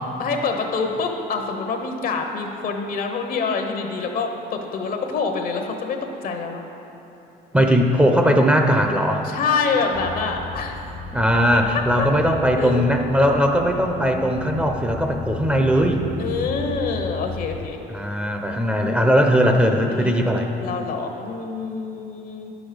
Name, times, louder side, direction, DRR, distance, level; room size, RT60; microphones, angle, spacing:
voice 1, 0.2-6.7 9.2-10.8 12.0-12.1 12.6-12.8 16.2-17.8 19.9-20.3 20.6-22.5, left 4 dB, 55° left, 4 dB, 1.0 m, -26 dB
voice 2, 7.5-9.3 11.1-16.0 17.9-20.5, equal, 5° right, 3 dB, 0.6 m, -19 dB
sound 1, 9.9-17.7, left 5 dB, 30° left, 0.4 m, -35 dB
9.7 x 6.2 x 5.1 m, 3.0 s
cardioid pair, 110°, 17 cm